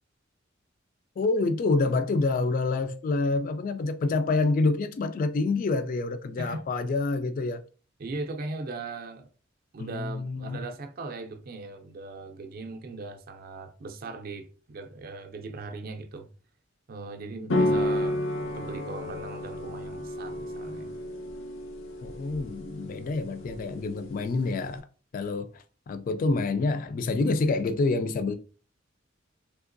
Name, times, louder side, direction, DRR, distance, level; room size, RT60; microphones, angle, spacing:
voice 1, 1.2-7.6 9.8-10.6 17.5-17.8 22.0-24.8 25.1-28.4, left 3 dB, 45° left, 0.3 m, -27 dB
voice 2, 8.0-9.3 9.7-16.3 16.9-20.9, right 3 dB, 50° right, 0.4 m, -39 dB
sound 1, 17.5-24.8, left 1 dB, 85° left, 0.6 m, -32 dB
3.5 x 2.9 x 2.5 m
head